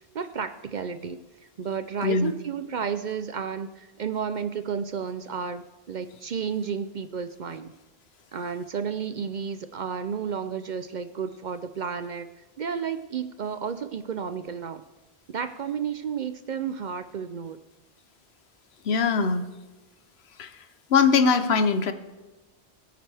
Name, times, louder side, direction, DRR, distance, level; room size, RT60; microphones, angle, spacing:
voice 1, 0.1-1.2 1.6-7.7 8.3-12.3 12.6-14.8 15.3-17.6, right 6 dB, 55° right, 11 dB, 0.6 m, -32 dB
voice 2, 2.0-2.3 18.8-19.4 20.4-20.6 20.9-21.9, left 5 dB, 75° left, 10 dB, 1.1 m, -21 dB
21.5 x 9.0 x 3.4 m, 1.1 s
omnidirectional pair, 1.1 m